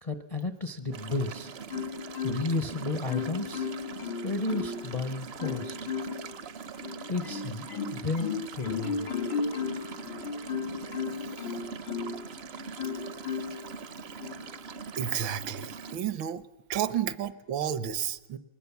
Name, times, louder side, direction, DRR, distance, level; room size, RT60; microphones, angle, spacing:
voice 1, 0.0-1.5 2.2-3.7 4.2-5.9 7.1-9.1, left 3 dB, 40° left, 8 dB, 0.5 m, -33 dB
sound 1, 0.9-16.0, right 4 dB, 60° right, 0.7 m, -42 dB
Marimba xylophone, 1.7-2.7 3.1-4.9 5.4-6.3 6.8-12.3 12.8-13.7 14.2-14.5, left 5 dB, 85° left, 3.2 m, -34 dB
voice 2, 15.0-16.4 16.7-18.4, right 9 dB, 80° right, 14 dB, 1.6 m, -31 dB
20.5 x 20.0 x 7.1 m, 1.0 s
omnidirectional pair, 2.1 m